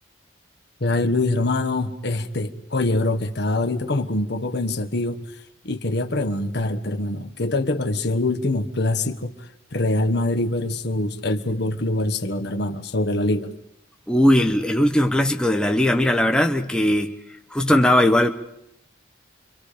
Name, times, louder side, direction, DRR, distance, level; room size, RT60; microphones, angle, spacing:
voice 1, 0.8-5.2 5.6-9.3 9.7-13.5, left 2 dB, 60° left, 1.3 m, -24 dB
voice 2, 14.1-17.2 17.5-18.3, left 1 dB, 5° left, 1.0 m, -19 dB
29.5 x 24.5 x 5.1 m
head